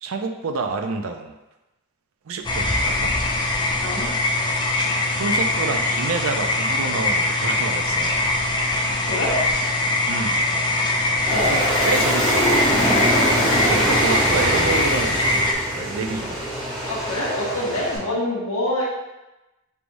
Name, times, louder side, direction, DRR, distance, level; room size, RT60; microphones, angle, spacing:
voice 1, 0.0-1.3 2.3-3.1 5.1-8.2 10.1-10.4 11.5-12.5 13.7-16.4 18.0-18.2, right 4 dB, 65° right, 5 dB, 0.5 m, -28 dB
sound 1, 2.4-15.5, left 2 dB, 20° left, 0.4 m, -22 dB
voice 2, 3.8-4.1 8.9-9.4 11.3-11.7 16.9-18.8, left 1 dB, 65° left, -7 dB, 1.0 m, -26 dB
Aircraft, 11.3-18.0, equal, ahead, 1.5 m, -23 dB
4.7 x 3.4 x 2.6 m, 1.0 s
head